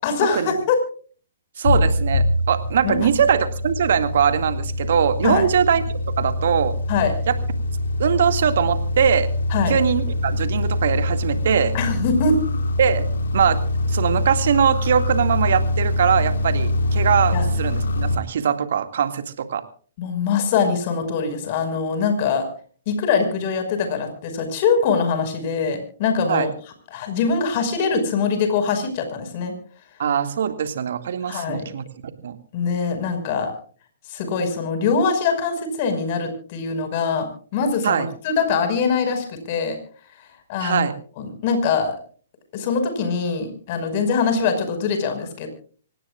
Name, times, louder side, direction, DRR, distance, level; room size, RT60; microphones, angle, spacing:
voice 1, 0.0-0.8 2.8-3.0 5.2-5.4 6.9-7.1 9.5-9.8 11.7-12.6 17.3-17.5 20.0-22.4 22.9-26.5 26.9-29.5 31.3-31.7 32.5-33.5 34.1-39.8 40.5-40.9 41.2-41.9 42.5-45.5, left 5 dB, 45° left, 7 dB, 5.5 m, -23 dB
sound 1, 1.6-18.2, left 1 dB, 75° left, 1.9 m, -24 dB
voice 2, 1.6-5.8 6.2-6.8 7.3-7.4 8.0-9.3 9.7-11.7 12.8-13.0 13.3-13.6 13.9-19.6 26.3-26.5 30.0-31.8 32.2-32.4 37.8-38.1 40.6-41.0, right 8 dB, 65° right, 9 dB, 2.1 m, -21 dB
25.5 x 18.5 x 2.4 m, 0.43 s
hypercardioid pair, 125°, 0 cm